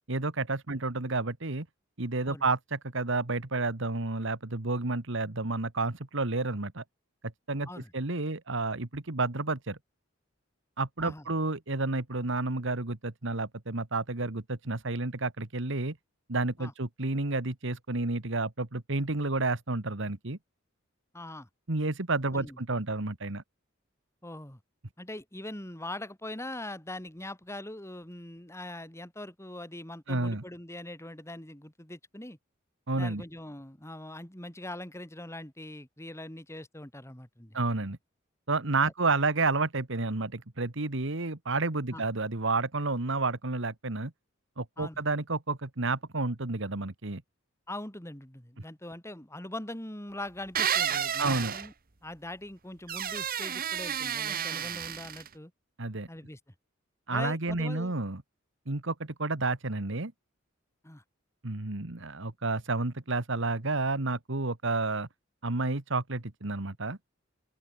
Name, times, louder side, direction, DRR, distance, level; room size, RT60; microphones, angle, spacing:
voice 1, 0.1-1.7 2.0-6.8 7.5-7.7 7.9-9.8 10.8-16.0 16.3-20.4 21.7-23.4 30.1-30.4 32.9-33.2 37.5-38.0 38.5-44.1 44.6-47.2 51.2-51.5 55.8-56.1 57.1-58.2 58.7-60.1 61.4-65.1 65.4-67.0, right 3 dB, 65° right, 1.8 m, -30 dB
voice 2, 21.1-21.5 22.3-22.6 24.2-24.6 25.0-32.4 32.9-37.6 38.8-38.9 41.9-42.0 44.8-45.0 47.7-51.7 52.0-55.5 56.1-56.4 57.1-57.9 60.8-61.0, left 1 dB, 15° left, 3.3 m, -42 dB
sound 1, 50.6-51.7 52.9-55.3, right 9 dB, 45° right, 1.3 m, -31 dB
open air
head